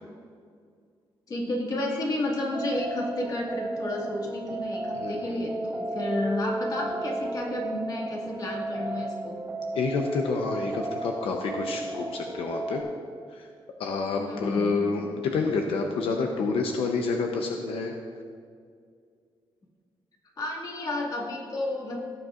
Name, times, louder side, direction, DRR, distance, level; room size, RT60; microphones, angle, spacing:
voice 1, 1.3-9.4 14.2-14.8 20.4-22.0, left 1 dB, 45° left, -2 dB, 2.2 m, -31 dB
sound 1, 2.5-12.8, right 2 dB, 30° right, 2.1 m, -34 dB
voice 2, 4.9-5.4 9.7-12.8 13.3-13.5 13.8-17.9, left 4 dB, 85° left, 2 dB, 0.8 m, -28 dB
18.0 x 8.0 x 2.5 m, 2.2 s
cardioid pair, 115°, 9 cm